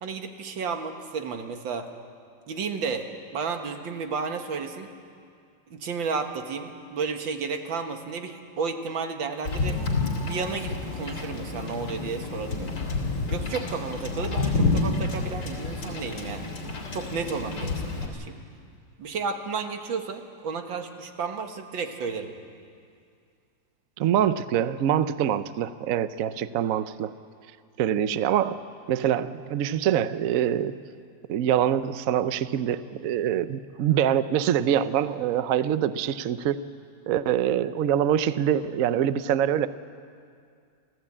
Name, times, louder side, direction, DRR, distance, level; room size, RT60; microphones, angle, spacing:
voice 1, 0.0-1.9 2.5-4.9 5.7-9.8 10.2-12.9 13.3-16.5 16.9-18.4 19.0-22.3, right 5 dB, 85° right, 6 dB, 2.1 m, -32 dB
Wind / Boat Water vehicle, 9.4-18.1, left 3 dB, 65° left, 3.4 m, -29 dB
voice 2, 24.0-27.1 27.8-28.6 28.9-30.8 31.3-36.6 37.1-39.7, right 10 dB, 65° right, 13 dB, 0.9 m, -24 dB
27.0 x 15.0 x 8.7 m, 2.3 s
omnidirectional pair, 2.0 m